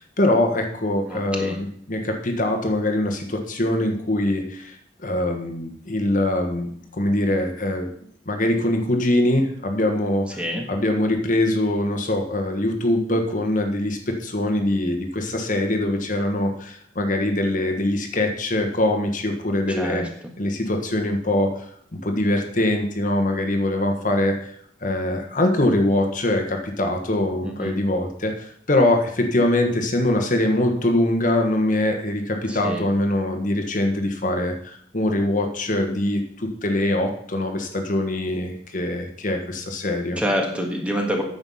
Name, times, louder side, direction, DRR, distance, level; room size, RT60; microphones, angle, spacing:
voice 1, 0.0-4.7 5.0-7.9 8.3-10.4 10.7-20.0 20.4-24.5 24.8-40.2, left 1 dB, 50° left, 4 dB, 1.4 m, -23 dB
voice 2, 1.1-1.6 10.4-10.6 19.7-20.1 27.4-27.7 32.5-32.8 40.2-41.2, equal, 5° right, 1 dB, 1.7 m, -26 dB
9.5 x 6.9 x 5.6 m, 0.64 s
head